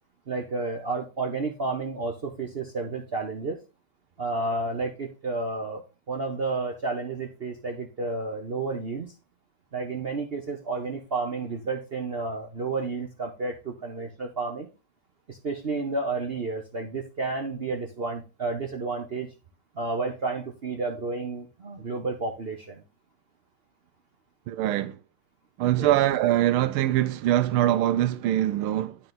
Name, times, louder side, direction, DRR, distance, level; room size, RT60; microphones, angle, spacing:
voice 1, 0.3-3.6 4.2-5.8 6.1-9.1 9.7-14.7 15.3-19.3 19.8-22.8 25.8-25.9, right 3 dB, 55° right, 0.6 m, -31 dB
voice 2, 24.5-25.0 25.6-29.0, right 13 dB, 85° right, 1.5 m, -23 dB
11.0 x 4.1 x 3.8 m
omnidirectional pair, 2.3 m